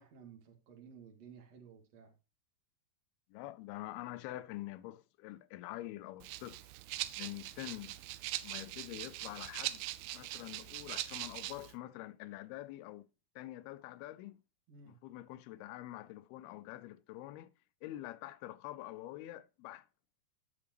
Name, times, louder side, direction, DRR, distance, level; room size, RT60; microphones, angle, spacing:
voice 1, 0.0-2.1 14.7-15.0, right 6 dB, 50° right, 2.8 m, -55 dB
voice 2, 3.3-6.6 7.2-8.0 8.4-9.8 10.1-13.1 13.4-14.4 14.9-17.5 17.8-19.9, left 15 dB, 85° left, 2.5 m, -46 dB
Rattle (instrument), 6.2-11.7, right 16 dB, 80° right, 2.3 m, -42 dB
11.5 x 8.7 x 3.0 m
omnidirectional pair, 4.5 m